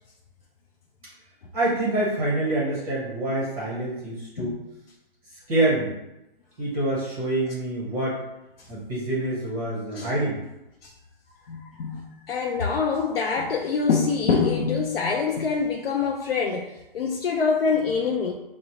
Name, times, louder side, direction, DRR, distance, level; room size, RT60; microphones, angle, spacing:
voice 1, 1.5-4.6 5.5-5.9 6.6-8.2 8.7-10.4, right 1 dB, 20° right, -6 dB, 0.7 m, -26 dB
voice 2, 11.5-18.3, left 5 dB, 70° left, 0 dB, 0.6 m, -25 dB
6.0 x 2.0 x 2.8 m, 0.93 s
hypercardioid pair, 165°, 30 cm